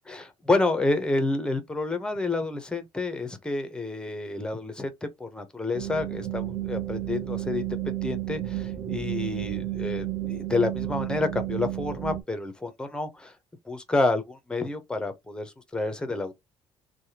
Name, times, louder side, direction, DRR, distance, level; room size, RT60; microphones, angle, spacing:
voice 1, 0.1-13.3 13.7-16.3, left 2 dB, 10° left, 0.6 m, -29 dB
sound 1, 5.7-12.2, right 14 dB, 40° right, 0.7 m, -32 dB
3.3 x 2.1 x 2.8 m
cardioid pair, 150°, 11 cm